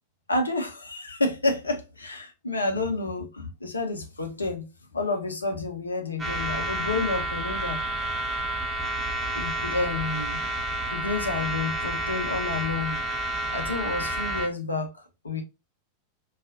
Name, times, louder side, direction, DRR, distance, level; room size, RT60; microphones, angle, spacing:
voice 1, 0.3-4.7 4.9-7.8 9.3-10.4 10.9-13.0 13.5-15.4, left 3 dB, 75° left, 0.6 m, -29 dB
sound 1, 6.2-14.5, right 1 dB, 10° right, 0.9 m, -30 dB
3.9 x 2.4 x 2.5 m
figure-of-eight pair, 90°, 0 cm